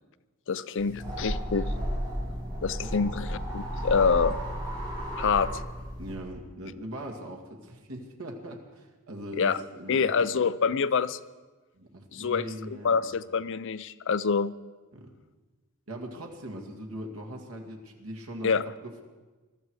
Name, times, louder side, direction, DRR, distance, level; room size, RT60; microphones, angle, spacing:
voice 1, 0.5-1.7 2.6-4.4 5.2-5.5 9.4-9.6 9.9-11.2 12.1-12.4 12.8-14.5 18.4-18.6, left 5 dB, 60° left, 14 dB, 0.5 m, -26 dB
sound 1, 0.8-6.2, equal, 25° right, 7.2 m, -33 dB
voice 2, 6.0-10.3 10.8-10.9 11.7-13.0 14.9-15.1 15.9-19.0, right 1 dB, 85° right, 2 dB, 2.1 m, -40 dB
21.0 x 13.0 x 4.8 m, 1.3 s
head